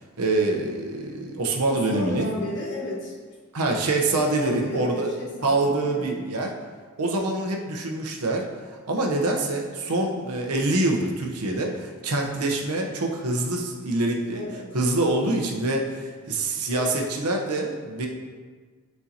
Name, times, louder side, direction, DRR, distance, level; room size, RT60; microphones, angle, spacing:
voice 1, 0.2-2.3 3.5-5.1 5.4-6.5 7.0-14.4 14.7-18.1, right 2 dB, 85° right, 1 dB, 0.9 m, -25 dB
voice 2, 1.7-3.1 4.1-6.2 14.3-14.7, left 1 dB, 55° left, -3 dB, 1.3 m, -34 dB
8.3 x 4.5 x 2.8 m, 1.5 s
head